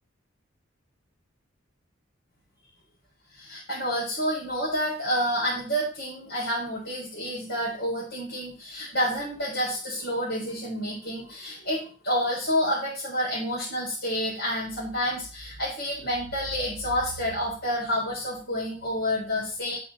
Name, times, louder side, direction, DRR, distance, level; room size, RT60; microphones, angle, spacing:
voice 1, 3.4-19.8, equal, 65° left, -7 dB, 4.1 m, -29 dB
8.7 x 6.3 x 4.2 m, 0.36 s
head